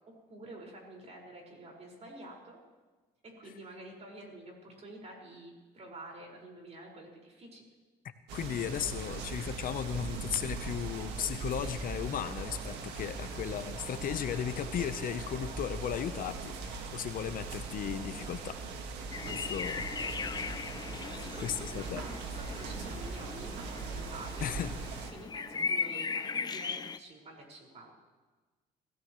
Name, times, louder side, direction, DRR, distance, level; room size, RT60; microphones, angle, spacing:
voice 1, 0.3-2.6 3.2-7.6 8.9-9.0 13.0-13.1 21.0-23.5 23.9-24.6 25.1-27.9, right 2 dB, 40° right, -1 dB, 5.2 m, -48 dB
voice 2, 8.3-18.6 19.3-19.9 21.4-22.0 24.4-24.7, left 9 dB, 55° left, 10 dB, 0.9 m, -36 dB
sound 1, 8.3-25.1, right 4 dB, 90° right, 1.8 m, -40 dB
sound 2, 19.1-27.0, left 5 dB, 25° left, 0.6 m, -38 dB
24.0 x 16.0 x 3.2 m, 1.3 s
cardioid pair, 110°, 17 cm